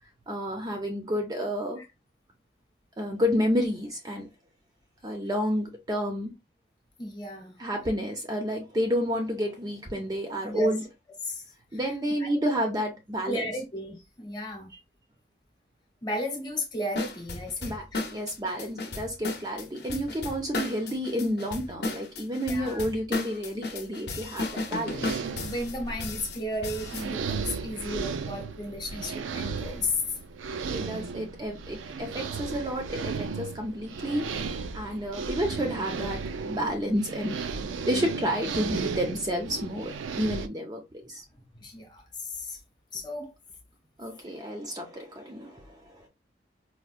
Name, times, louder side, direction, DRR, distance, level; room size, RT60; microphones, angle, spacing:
voice 1, 0.3-1.8 3.0-4.3 5.0-6.3 7.6-10.8 11.7-13.4 17.6-17.8 18.1-25.0 30.6-37.4 37.9-41.2 44.0-46.1, equal, 20° right, 0.4 m, -30 dB
voice 2, 7.0-7.6 10.4-10.7 11.2-11.5 11.7-11.8 12.2-12.3 13.3-14.7 16.0-18.0 22.5-22.8 25.4-30.0 32.9-33.0 41.3-42.6 42.9-43.3, left 1 dB, 25° left, 0.8 m, -34 dB
sound 1, 16.9-27.1, left 2 dB, 60° left, 0.7 m, -34 dB
sound 2, 24.5-40.5, right 5 dB, 90° right, 0.4 m, -35 dB
4.4 x 2.1 x 2.4 m
head